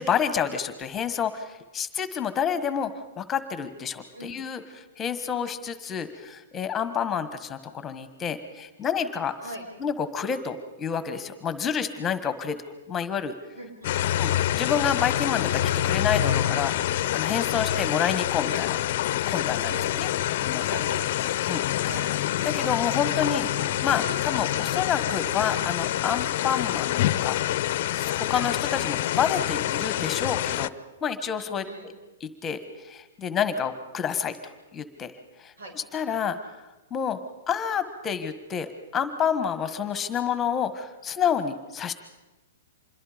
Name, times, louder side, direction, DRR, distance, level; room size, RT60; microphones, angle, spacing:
voice 1, 0.0-2.9 3.2-9.3 9.8-12.6 12.9-13.3 14.2-16.7 17.1-18.8 19.3-20.1 20.4-20.8 21.5-21.6 22.4-23.5 23.8-26.9 27.2-27.4 27.9-30.7 31.0-31.9 32.2-32.6 32.8-34.4 34.7-35.1 35.4-36.4 36.9-37.2 37.5-41.9, left 7 dB, 20° left, 11 dB, 1.5 m, -29 dB
voice 2, 13.5-14.1 19.6-20.4 20.7-21.1 21.8-22.1 31.6-31.8 35.6-35.7, right 1 dB, 80° right, 1 dB, 7.1 m, -40 dB
sound 1, 13.8-30.7, left 13 dB, 55° left, 0.7 m, -26 dB
26.0 x 21.5 x 5.2 m, 1.1 s
hypercardioid pair, 140°, 0 cm